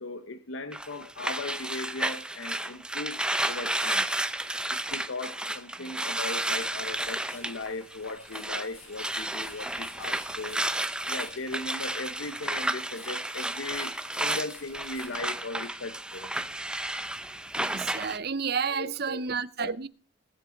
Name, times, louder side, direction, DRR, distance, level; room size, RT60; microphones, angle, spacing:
voice 1, 0.0-3.2 3.5-4.1 4.7-10.7 11.1-13.9 14.2-16.3 18.7-19.2 19.6-19.7, left 2 dB, 70° left, 0.9 m, -38 dB
sound 1, 0.7-8.7 8.9-18.2, right 1 dB, 5° right, 0.6 m, -32 dB
sound 2, 6.9-15.2, left 4 dB, 85° left, 7.9 m, -54 dB
voice 2, 17.6-19.9, right 5 dB, 50° right, 0.7 m, -31 dB
20.0 x 8.0 x 3.9 m
head